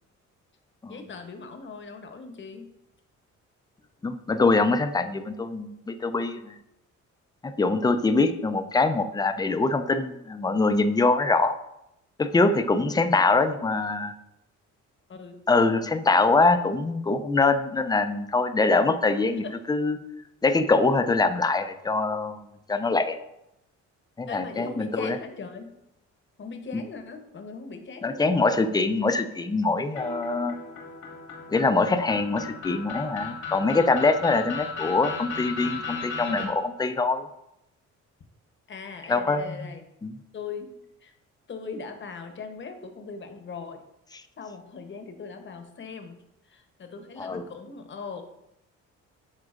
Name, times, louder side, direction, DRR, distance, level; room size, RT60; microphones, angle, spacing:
voice 1, 0.9-2.7 15.1-15.4 19.4-19.5 24.3-25.7 26.4-28.2 38.7-39.8 40.3-40.7 41.0-41.1 41.5-43.8 44.4-46.2 46.5-48.2, left 5 dB, 40° left, 6 dB, 0.9 m, -39 dB
voice 2, 4.0-6.6 7.4-11.6 12.2-14.1 15.5-20.0 20.4-22.4 22.7-23.2 24.2-25.2 26.7-26.8 28.0-30.6 31.5-37.2 39.1-39.6 40.0-40.1 44.1-44.2 47.2-47.5, left 3 dB, 15° left, 9 dB, 0.4 m, -24 dB
sound 1, 29.9-36.4, left 5 dB, 90° left, 1.9 m, -36 dB
10.5 x 3.8 x 2.5 m, 0.84 s
cardioid pair, 90°, 30 cm